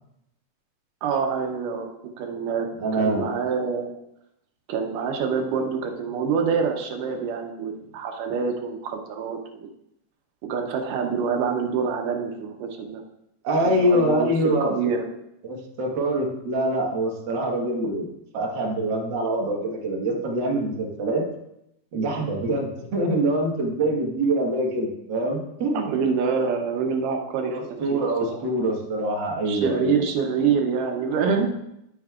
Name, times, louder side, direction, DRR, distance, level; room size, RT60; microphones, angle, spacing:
voice 1, 1.0-1.9 2.2-2.7 3.0-3.9 4.7-9.7 10.4-13.0 13.6-15.1 25.7-28.4 29.5-31.5, right 6 dB, 90° right, 3 dB, 2.5 m, -26 dB
voice 2, 2.8-3.3 13.4-14.7 15.4-21.2 21.9-25.9 27.5-30.0, right 1 dB, 45° right, -1 dB, 1.7 m, -25 dB
11.0 x 9.2 x 2.4 m, 0.83 s
omnidirectional pair, 3.6 m